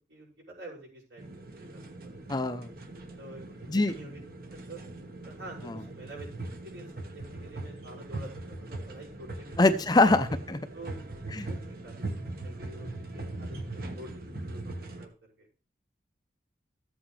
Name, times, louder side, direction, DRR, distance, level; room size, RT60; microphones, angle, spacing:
voice 1, 0.0-2.5 3.2-4.2 4.7-4.8 5.2-9.9 10.7-15.1 15.4-15.5, right 1 dB, 80° right, -4 dB, 6.2 m, -48 dB
sound 1, 1.2-15.1, right 2 dB, 55° right, 1.4 m, -40 dB
voice 2, 2.3-2.7 3.7-3.9 9.6-10.6 11.4-11.5, left 2 dB, 20° left, 10 dB, 0.6 m, -23 dB
14.0 x 8.2 x 3.2 m, 0.36 s
head